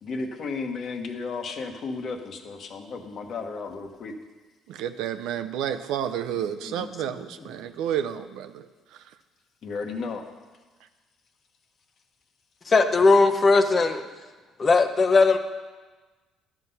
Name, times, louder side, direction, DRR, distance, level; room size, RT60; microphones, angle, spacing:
voice 1, 0.0-4.1 9.6-10.2, left 4 dB, 55° left, 5 dB, 1.2 m, -33 dB
voice 2, 4.7-8.7, right 9 dB, 80° right, 9 dB, 0.6 m, -30 dB
voice 3, 12.7-14.0 14.6-15.4, left 3 dB, 35° left, 7 dB, 0.8 m, -19 dB
12.0 x 6.0 x 5.5 m, 1.3 s
cardioid pair, 90°, 0 cm